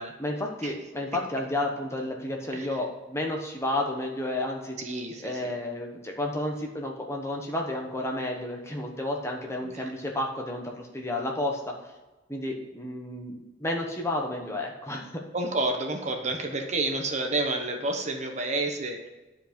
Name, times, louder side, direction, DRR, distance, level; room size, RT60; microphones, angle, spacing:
voice 1, 0.2-4.8 5.2-11.7 12.3-15.2, left 1 dB, 15° left, 1 dB, 1.1 m, -31 dB
voice 2, 4.8-5.5 9.6-9.9 15.3-19.1, right 2 dB, 35° right, 3 dB, 1.0 m, -30 dB
10.0 x 4.9 x 5.2 m, 1.1 s
head